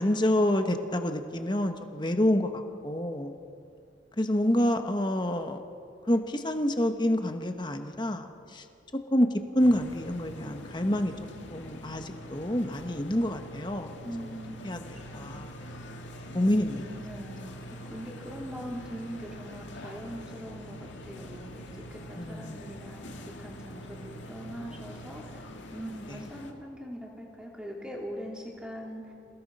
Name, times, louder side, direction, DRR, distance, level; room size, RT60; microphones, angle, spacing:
voice 1, 0.0-3.3 4.2-5.6 6.1-8.6 9.1-9.3 9.5-11.1 11.5-13.9 14.6-14.8 15.1-15.5 16.3-16.8 22.1-22.6, left 1 dB, 25° left, 6 dB, 1.2 m, -27 dB
sound 1, 9.6-26.5, equal, 80° left, 2.1 m, -44 dB
voice 2, 14.0-14.7 15.1-15.4 16.4-16.5 17.0-17.6 17.8-21.6 21.9-29.0, equal, 5° right, -2 dB, 3.4 m, -41 dB
28.0 x 18.0 x 5.5 m, 2.4 s
head